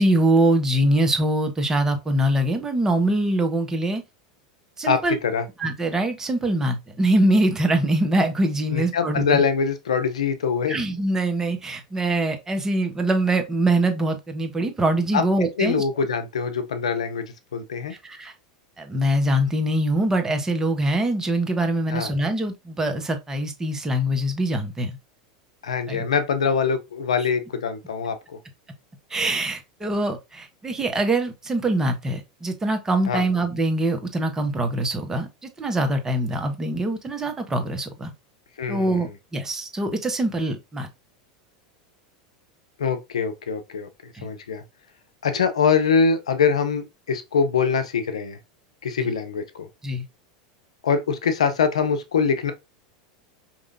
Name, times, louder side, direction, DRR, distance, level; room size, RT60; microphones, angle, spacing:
voice 1, 0.0-4.0 4.8-5.2 5.6-9.4 10.7-15.8 18.0-18.3 18.8-24.9 25.9-26.0 29.1-38.1 38.7-40.9 44.1-44.3 49.0-49.1 49.8-50.0, right 1 dB, 15° right, 1.0 m, -23 dB
voice 2, 4.8-5.4 8.7-10.8 15.1-15.2 15.6-17.9 21.9-22.1 25.6-28.4 33.1-33.2 38.6-39.1 42.8-44.6 45.2-48.4 48.8-49.7 50.8-52.5, left 6 dB, 85° left, 0.6 m, -23 dB
4.9 x 2.9 x 2.6 m
hypercardioid pair, 95°, 3 cm